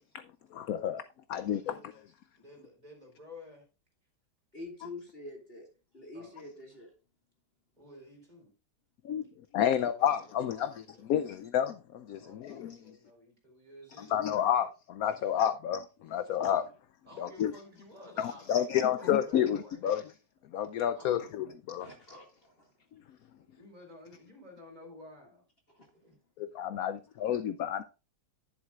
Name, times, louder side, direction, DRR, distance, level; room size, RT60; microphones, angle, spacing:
voice 1, 0.5-1.0 1.3-1.6 9.0-9.2 9.5-12.8 14.0-16.7 17.2-17.5 18.2-20.0 20.5-21.9 26.4-27.8, left 10 dB, 70° left, 0.9 m, -30 dB
voice 2, 1.5-1.8 2.4-3.7 6.1-6.4 7.8-8.5 9.6-11.5 12.2-14.2 17.1-20.1 20.9-21.3 23.6-25.5 25.9-26.2, left 1 dB, 20° right, 4.3 m, -53 dB
voice 3, 4.5-5.7 5.9-6.9 21.7-22.7 25.7-25.9, left 2 dB, 30° left, 2.2 m, -46 dB
11.0 x 11.0 x 2.4 m
omnidirectional pair, 1.9 m